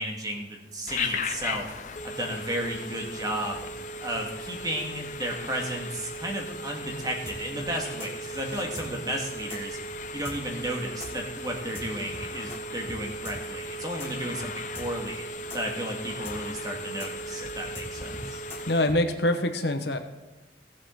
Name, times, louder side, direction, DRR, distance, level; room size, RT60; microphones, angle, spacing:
voice 1, 0.0-1.7 2.0-3.7 4.0-9.8 10.1-15.2 15.5-18.4, right 1 dB, 20° right, 1 dB, 1.8 m, -33 dB
Telephone, 0.9-19.0, left 1 dB, 40° left, 0.6 m, -37 dB
sound 1, 7.3-12.6 12.9-13.0 13.2-19.0, left 2 dB, 15° left, 1.9 m, -41 dB
voice 2, 18.7-20.0, left 1 dB, 65° left, 6 dB, 1.1 m, -24 dB
17.5 x 7.6 x 3.8 m, 1.1 s
head